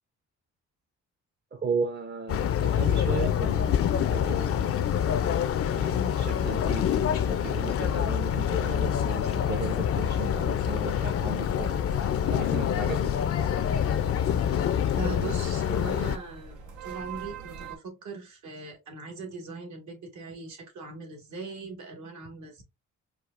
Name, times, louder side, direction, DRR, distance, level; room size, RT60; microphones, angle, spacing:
voice 1, 1.5-4.9 5.7-11.8 12.3-13.1, right 5 dB, 35° right, 0.7 m, -36 dB
sound 1, 2.3-16.2, left 9 dB, 50° left, 0.5 m, -26 dB
sound 2, 11.4-17.8, right 6 dB, 90° right, 1.0 m, -45 dB
voice 2, 14.9-22.6, right 3 dB, 70° right, 1.6 m, -40 dB
4.6 x 2.4 x 2.4 m
cardioid pair, 90°, 30 cm